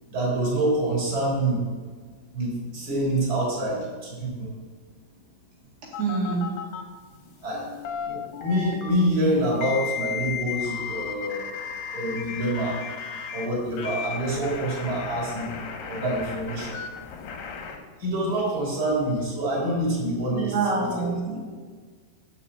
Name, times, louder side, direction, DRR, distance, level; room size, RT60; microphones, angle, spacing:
voice 1, 0.1-1.6 2.3-4.5 7.4-7.6 8.1-11.5 11.9-12.8 13.3-15.5 15.9-16.8 18.0-21.1, right 1 dB, 25° right, -5 dB, 3.7 m, -26 dB
sound 1, 5.9-6.8 7.5-8.9 9.6-13.5 13.8-17.8, left 7 dB, 70° left, 2.3 m, -35 dB
voice 2, 6.0-6.4 20.3-21.4, right 4 dB, 70° right, -5 dB, 4.0 m, -26 dB
7.3 x 6.6 x 7.7 m, 1.5 s
omnidirectional pair, 4.9 m